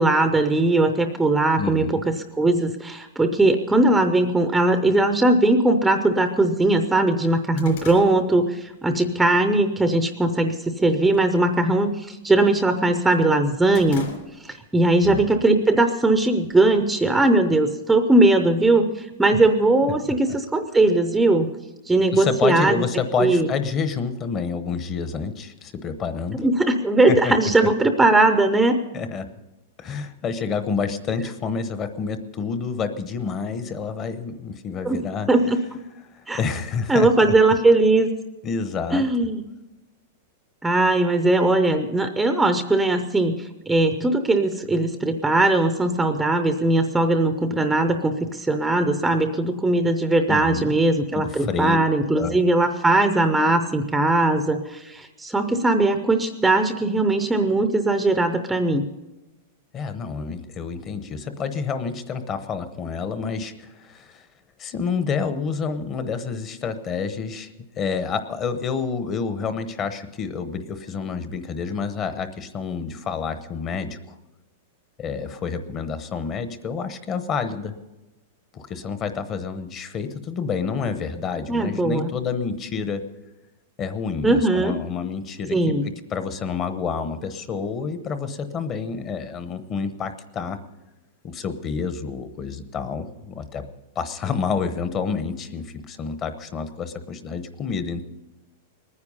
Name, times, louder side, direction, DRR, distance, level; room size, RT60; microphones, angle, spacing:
voice 1, 0.0-14.1 14.4-21.5 21.9-22.8 23.2-23.5 26.4-28.8 34.8-35.0 35.3-35.8 36.3-36.4 36.9-38.1 38.9-39.4 40.6-58.9 81.5-82.1 84.2-84.8 85.5-85.9, right 2 dB, 5° right, 7 dB, 0.6 m, -20 dB
voice 2, 1.6-2.0 15.0-15.3 19.3-19.4 20.1-20.4 22.1-26.4 27.1-27.3 27.6-27.7 28.9-29.3 29.8-35.3 36.1-37.3 38.4-39.0 50.3-50.7 51.1-51.8 52.1-52.4 59.7-64.3 64.6-67.5 67.8-74.2 75.0-77.7 78.5-83.0 83.8-85.8 86.1-90.6 91.2-93.7 94.0-98.0, left 5 dB, 25° left, 10 dB, 0.9 m, -28 dB
sound 1, 5.7-5.8 6.3-6.4 6.7-9.1 9.5-9.8 10.2-10.7 11.0-11.3 11.6-12.9 13.2-14.7 15.1-15.2 16.1-17.0, left 5 dB, 60° left, 3.6 m, -42 dB
20.5 x 9.8 x 5.4 m, 1.0 s
supercardioid pair, 165°, 0 cm